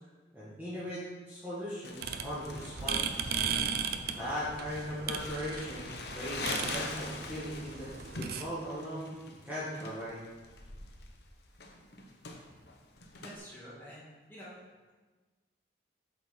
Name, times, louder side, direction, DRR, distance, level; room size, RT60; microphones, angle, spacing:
voice 1, 0.3-3.0 4.2-9.1 9.4-10.2, equal, 10° right, -11 dB, 1.7 m, -39 dB
Crumpling crinkling, 1.8-13.4, left 3 dB, 60° left, 0.9 m, -43 dB
sound 1, 2.0-8.4, right 6 dB, 55° right, 0.5 m, -37 dB
voice 2, 13.1-14.5, equal, 10° left, -9 dB, 2.3 m, -49 dB
8.0 x 5.9 x 4.4 m, 1.3 s
head